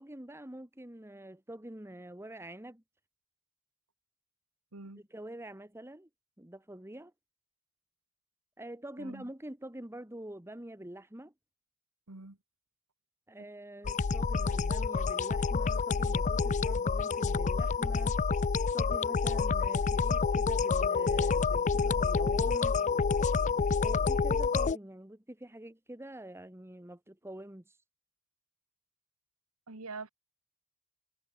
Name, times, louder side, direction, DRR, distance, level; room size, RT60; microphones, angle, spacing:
voice 1, 0.0-2.8 5.1-6.1 6.4-7.1 8.6-11.3 13.3-18.2 18.7-22.7 23.8-27.8, right 1 dB, 10° right, 1.5 m, -46 dB
voice 2, 9.0-9.3 12.1-12.4 29.7-30.1, right 3 dB, 75° right, 1.9 m, -44 dB
sound 1, 13.8-24.8, left 5 dB, 35° left, 0.4 m, -28 dB
head